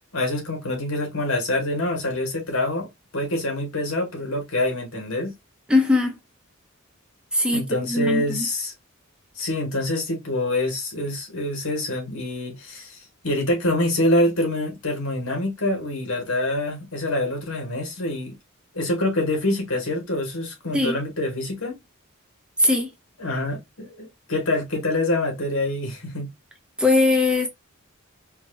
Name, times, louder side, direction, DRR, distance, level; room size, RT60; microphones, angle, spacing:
voice 1, 0.1-5.3 7.5-8.7 9.4-13.0 13.2-18.4 18.7-21.8 23.2-26.3, left 1 dB, 75° left, 2.1 m, -26 dB
voice 2, 5.7-6.2 7.3-8.5 20.7-21.0 22.6-22.9 26.8-27.5, left 2 dB, 5° right, 0.8 m, -20 dB
4.5 x 3.0 x 2.8 m
head